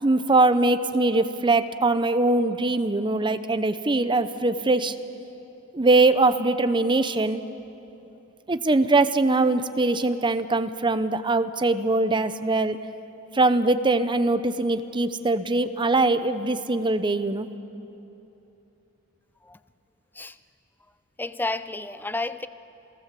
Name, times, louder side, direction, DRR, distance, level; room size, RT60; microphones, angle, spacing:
voice 1, 0.0-4.9 5.7-7.4 8.5-12.8 13.3-17.5, right 2 dB, 20° right, 11 dB, 0.8 m, -22 dB
voice 2, 21.2-22.5, left 2 dB, 10° left, 13 dB, 0.5 m, -31 dB
28.0 x 18.0 x 7.6 m, 2.9 s
head